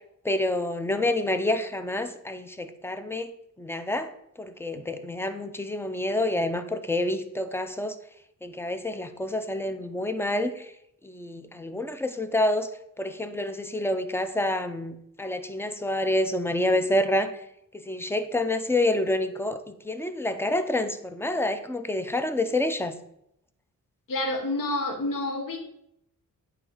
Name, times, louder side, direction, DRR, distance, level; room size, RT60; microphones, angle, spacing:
voice 1, 0.2-3.3 3.6-4.1 4.4-8.0 8.4-10.7 11.0-12.7 13.0-17.3 17.7-19.6 19.8-23.0, left 1 dB, 5° left, 9 dB, 0.5 m, -28 dB
voice 2, 24.1-25.6, left 2 dB, 70° left, 4 dB, 1.2 m, -28 dB
9.0 x 3.4 x 3.8 m, 0.77 s
wide cardioid pair, 115°, 33 cm